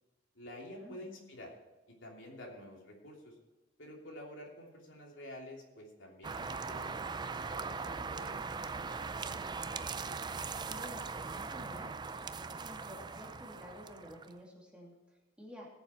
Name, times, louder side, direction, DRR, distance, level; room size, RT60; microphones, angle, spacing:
voice 1, 0.3-1.5 1.9-3.3 3.8-8.3, left 1 dB, 80° left, -1 dB, 3.0 m, -49 dB
sound 1, 6.2-14.4, right 4 dB, 25° right, 0.4 m, -40 dB
voice 2, 9.2-11.9 12.4-15.7, equal, 5° right, -3 dB, 2.6 m, -52 dB
18.0 x 7.1 x 4.5 m, 1.1 s
head